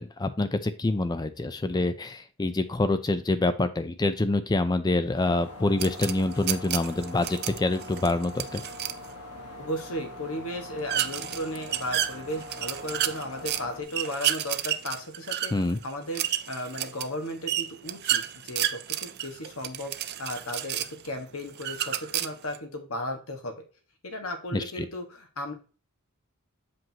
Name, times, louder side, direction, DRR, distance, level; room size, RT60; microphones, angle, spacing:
voice 1, 0.0-8.6 15.5-15.8 24.5-24.9, left 2 dB, 20° left, 11 dB, 0.4 m, -26 dB
sound 1, 5.1-13.8, left 2 dB, 90° left, 1.5 m, -43 dB
sound 2, 5.8-9.0 10.9-13.6 13.9-21.1 21.5-22.6, right 12 dB, 45° right, 0.4 m, -31 dB
voice 2, 9.6-15.5 15.8-19.9 20.2-23.5 24.0-25.5, left 1 dB, 70° left, 5 dB, 1.4 m, -35 dB
7.6 x 5.1 x 2.8 m, 0.35 s
head